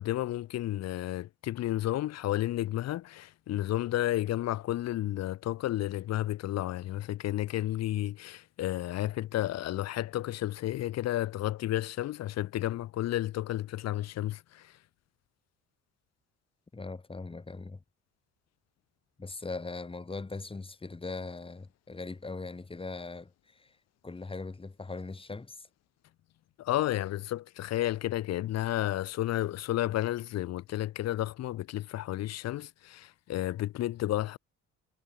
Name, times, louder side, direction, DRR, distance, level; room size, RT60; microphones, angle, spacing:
voice 1, 0.0-14.7 26.6-34.4, left 14 dB, 60° left, 0.5 m, -32 dB
voice 2, 16.7-17.8 19.2-23.7 24.0-25.7, left 3 dB, 20° left, 1.5 m, -40 dB
cardioid pair, 90°, 30 cm